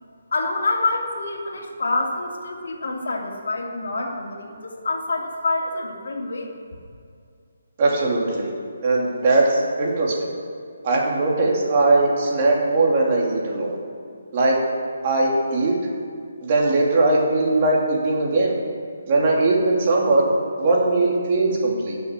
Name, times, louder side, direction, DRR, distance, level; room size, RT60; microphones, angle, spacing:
voice 1, 0.3-6.5, left 2 dB, 70° left, 1 dB, 2.6 m, -26 dB
voice 2, 7.8-8.5 8.8-10.3 10.8-13.8 14.3-14.6 15.0-15.7 16.4-18.5 19.1-22.0, right 2 dB, 30° right, -2 dB, 2.8 m, -20 dB
16.0 x 7.0 x 7.6 m, 2.3 s
hypercardioid pair, 165°, 0 cm